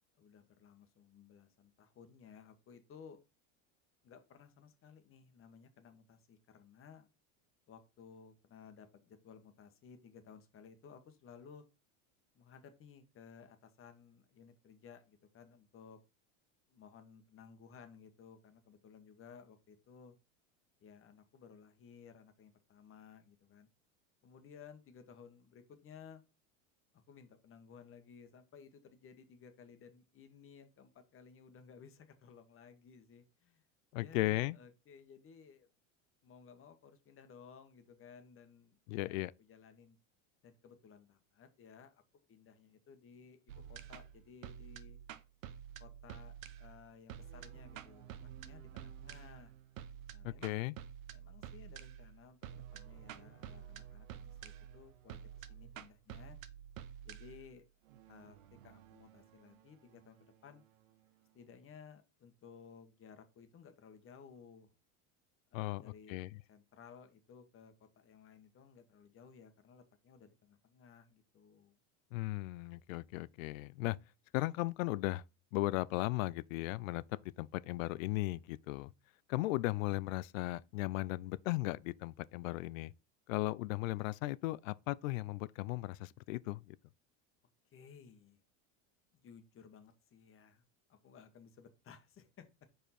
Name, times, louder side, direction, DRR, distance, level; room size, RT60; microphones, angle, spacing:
voice 1, 0.2-3.2 4.0-7.1 7.7-11.6 12.3-16.0 16.7-20.1 20.8-23.7 24.2-26.2 26.9-33.6 34.0-35.7 36.2-40.0 40.4-42.0 42.3-45.0 45.8-48.1 48.4-49.5 50.1-50.6 51.1-56.4 57.0-57.6 58.1-58.4 58.6-60.6 61.3-64.7 65.5-66.2 66.5-71.8 87.6-88.4 89.1-90.6 90.9-92.5, left 6 dB, 35° left, 1.3 m, -58 dB
voice 2, 33.9-34.6 38.9-39.3 50.2-50.8 65.5-65.8 66.1-66.3 72.1-74.0 74.3-75.2 75.5-77.0 77.4-78.9 79.3-82.9 83.3-86.7, left 19 dB, 85° left, 0.5 m, -36 dB
sound 1, 43.5-60.6, right 10 dB, 85° right, 0.8 m, -50 dB
5.0 x 4.6 x 4.2 m
supercardioid pair, 115°, 39 cm